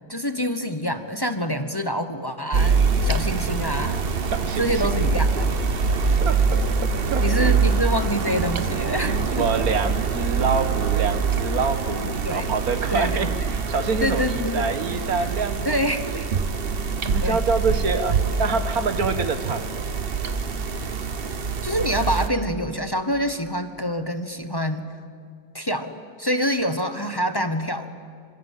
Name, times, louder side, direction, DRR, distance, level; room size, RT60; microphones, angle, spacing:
voice 1, 0.1-4.0 4.6-5.5 7.2-9.1 12.2-12.5 12.9-13.5 14.0-14.8 15.6-16.3 17.2-17.4 21.6-24.9 25.5-28.0, equal, 15° left, 8 dB, 0.9 m, -26 dB
sound 1, 2.5-22.3, right 5 dB, 40° right, 1.0 m, -24 dB
voice 2, 4.3-4.9 6.2-7.6 9.0-16.2 17.1-19.7, right 4 dB, 55° right, 9 dB, 1.9 m, -27 dB
27.0 x 26.0 x 8.4 m, 2.2 s
omnidirectional pair, 1.9 m